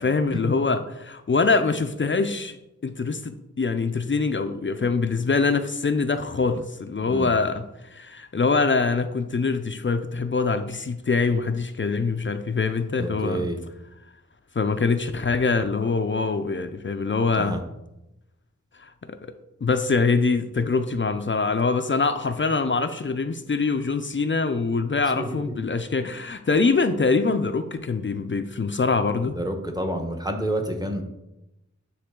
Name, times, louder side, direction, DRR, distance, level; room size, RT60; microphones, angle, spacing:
voice 1, 0.0-2.6 2.8-7.7 7.9-13.5 14.6-17.6 18.8-19.3 19.6-29.4, left 4 dB, 40° left, 9 dB, 0.5 m, -24 dB
voice 2, 13.0-13.6 17.3-17.6 25.2-25.4 29.3-31.0, right 1 dB, 15° right, 4 dB, 1.0 m, -29 dB
9.7 x 3.3 x 3.7 m, 0.91 s
wide cardioid pair, 50°, 30 cm